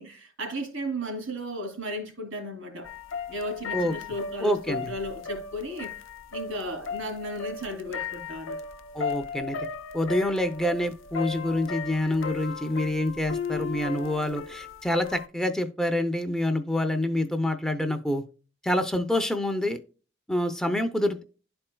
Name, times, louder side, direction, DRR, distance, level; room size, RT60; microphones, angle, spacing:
voice 1, 0.0-2.9 3.3-6.0 6.3-8.6, equal, 85° right, 2.7 m, -35 dB
sound 1, 2.8-15.3, left 6 dB, 75° left, 0.5 m, -36 dB
voice 2, 4.4-4.9 8.9-9.6 9.9-18.2 18.6-19.8 20.3-21.2, left 1 dB, 5° left, 0.5 m, -27 dB
11.5 x 4.4 x 2.2 m
head